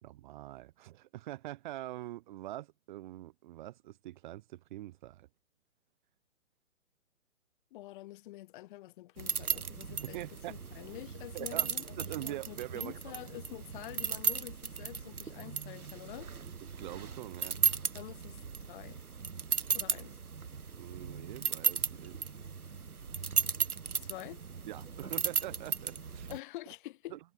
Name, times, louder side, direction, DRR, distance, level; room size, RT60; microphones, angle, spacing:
voice 1, 0.0-5.3 10.0-10.6 11.3-11.7 12.0-13.2 16.6-17.6 20.8-22.3 24.7-26.3 27.1-27.2, right 15 dB, 35° right, 1.7 m, -44 dB
voice 2, 7.7-10.2 10.5-16.3 17.9-19.0 19.7-20.2 24.0-24.4 26.3-27.2, left 17 dB, 35° left, 4.7 m, -47 dB
sound 1, 9.2-26.4, right 5 dB, 80° right, 2.4 m, -36 dB
hypercardioid pair, 140°, 43 cm